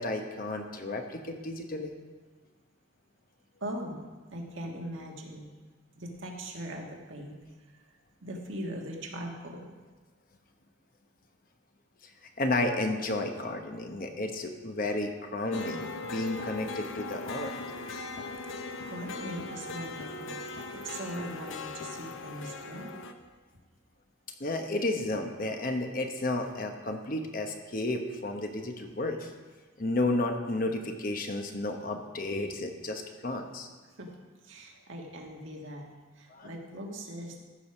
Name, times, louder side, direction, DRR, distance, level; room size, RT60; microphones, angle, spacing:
voice 1, 0.0-1.9 12.4-15.8 16.1-17.5 24.4-29.3 29.8-33.7 36.3-36.5, left 2 dB, 45° left, 4 dB, 0.9 m, -32 dB
voice 2, 3.6-5.5 6.0-7.4 7.7-9.7 18.5-18.6 18.8-23.0 34.0-34.1 34.4-37.4, right 1 dB, 70° right, 0 dB, 1.6 m, -40 dB
sound 1, 15.5-23.1, left 3 dB, 75° left, 0.8 m, -39 dB
14.0 x 4.9 x 6.0 m, 1.4 s
head